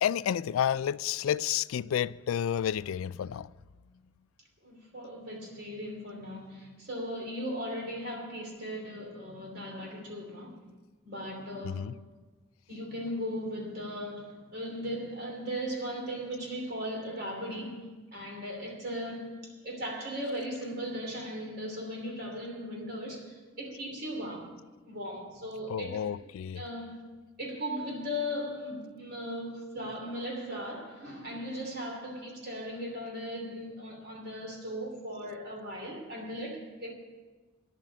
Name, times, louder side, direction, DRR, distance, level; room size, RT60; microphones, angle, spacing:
voice 1, 0.0-3.5 11.6-11.9 25.7-26.6, left 9 dB, 85° left, 0.3 m, -30 dB
voice 2, 4.6-10.6 11.0-12.0 12.7-24.6 24.9-26.3 26.5-27.0 27.4-36.9, equal, 50° right, 2.9 m, -38 dB
11.0 x 7.5 x 9.6 m
head